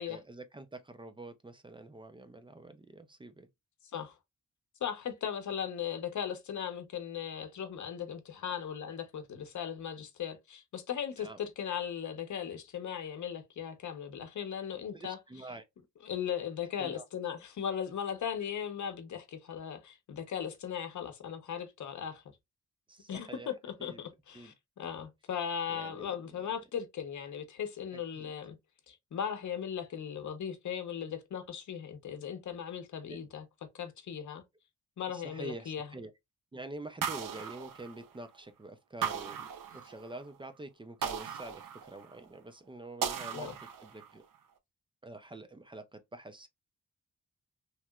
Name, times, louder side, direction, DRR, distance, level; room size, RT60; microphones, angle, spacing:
voice 1, 0.0-3.5 11.2-11.4 14.9-15.7 16.8-17.0 22.9-23.5 23.8-24.0 24.3-24.5 25.7-26.4 27.9-28.3 33.1-33.2 35.1-36.1 36.5-44.3 45.0-46.5, right 2 dB, 15° right, 0.3 m, -47 dB
voice 2, 4.8-15.2 16.0-22.2 23.1-28.6 28.9-33.4 33.7-34.4 35.0-35.9 43.3-43.5, left 8 dB, 65° left, 0.7 m, -38 dB
sound 1, 37.0-38.4 39.0-40.2 41.0-42.3 43.0-44.2, right 7 dB, 80° right, 0.5 m, -37 dB
3.0 x 2.8 x 2.2 m
wide cardioid pair, 155°, 31 cm